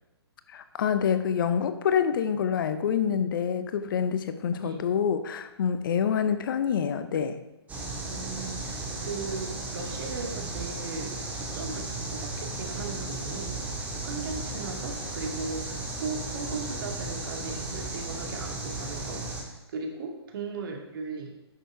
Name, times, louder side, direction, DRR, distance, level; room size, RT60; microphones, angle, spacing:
voice 1, 0.5-7.4, left 7 dB, 50° left, 11 dB, 0.8 m, -27 dB
voice 2, 4.6-4.9 8.1-21.4, right 4 dB, 55° right, 2 dB, 2.1 m, -38 dB
sound 1, 7.7-19.4, right 2 dB, 10° right, 2.0 m, -35 dB
9.9 x 6.8 x 4.8 m, 0.94 s
figure-of-eight pair, 130°, 14 cm